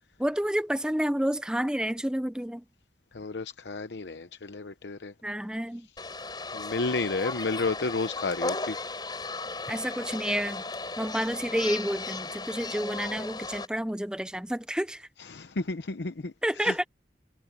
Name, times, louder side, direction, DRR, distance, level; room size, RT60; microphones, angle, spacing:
voice 1, 0.2-2.6 5.2-5.9 9.7-10.6 11.0-15.1 16.4-16.9, equal, 5° right, 0.6 m, -29 dB
voice 2, 3.1-5.1 6.5-8.8 15.2-16.7, left 3 dB, 80° left, 0.8 m, -32 dB
sound 1, 6.0-13.7, left 3 dB, 25° left, 5.5 m, -35 dB
head